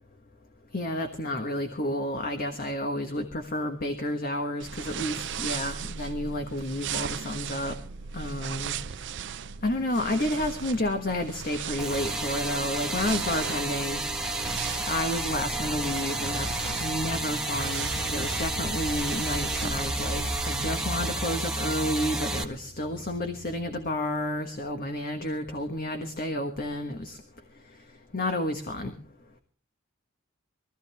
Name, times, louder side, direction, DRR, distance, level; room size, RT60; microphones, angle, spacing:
voice 1, 0.7-7.8 8.1-8.7 9.6-14.0 14.9-16.5 16.8-27.2 28.1-28.9, left 1 dB, 45° left, 6 dB, 1.5 m, -30 dB
sound 1, 4.6-20.7, right 7 dB, 60° right, 0.6 m, -37 dB
sound 2, 11.8-22.4, right 2 dB, 5° right, 1.4 m, -31 dB
23.0 x 14.0 x 3.5 m, 0.42 s
head